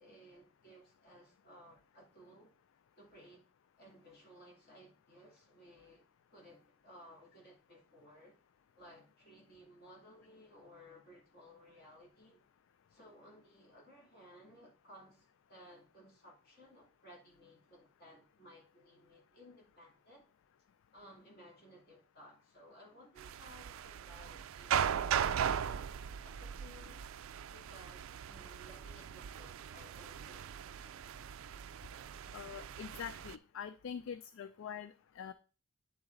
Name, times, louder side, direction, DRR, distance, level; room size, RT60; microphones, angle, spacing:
voice 1, 0.0-2.5 3.0-3.5 3.8-6.0 6.3-8.4 8.7-12.4 12.9-20.3 20.9-27.0 27.5-31.1, equal, 50° left, 2.6 m, -59 dB
sound 1, 23.2-33.4, right 8 dB, 70° right, 0.4 m, -38 dB
voice 2, 32.3-35.3, left 7 dB, 65° left, 0.3 m, -44 dB
9.6 x 3.9 x 3.8 m
head